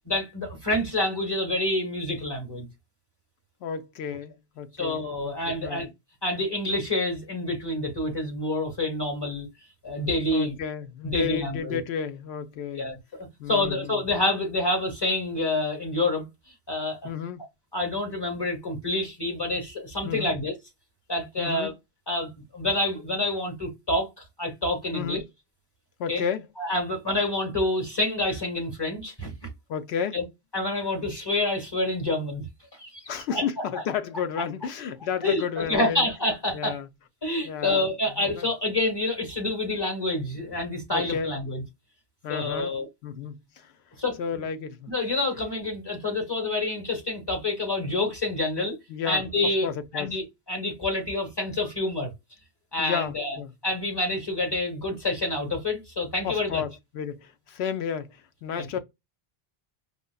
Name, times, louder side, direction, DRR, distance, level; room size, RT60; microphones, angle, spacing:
voice 1, 0.1-2.7 4.8-5.9 6.2-9.5 9.8-10.6 11.0-11.8 12.7-16.2 16.7-17.1 17.7-20.5 21.1-21.7 22.1-24.1 24.4-25.2 26.1-26.2 26.6-29.3 30.1-30.2 30.5-32.4 32.8-33.0 33.3-33.4 35.2-36.8 37.2-41.6 42.3-42.9 44.0-44.4 44.9-48.7 49.0-52.1 52.7-56.6 58.6-58.7, left 2 dB, 25° left, 1.5 m, -28 dB
voice 2, 3.6-5.9 10.3-12.9 13.4-14.0 17.0-17.4 20.0-20.4 21.4-21.7 24.9-25.2 26.0-26.5 29.7-30.2 33.1-36.1 36.5-36.9 37.4-37.9 38.2-38.5 40.9-41.4 42.2-42.7 43.0-43.7 44.2-44.9 48.9-50.1 52.8-53.5 56.2-58.8, left 7 dB, 85° left, 0.9 m, -32 dB
5.0 x 2.2 x 2.2 m
omnidirectional pair, 1.0 m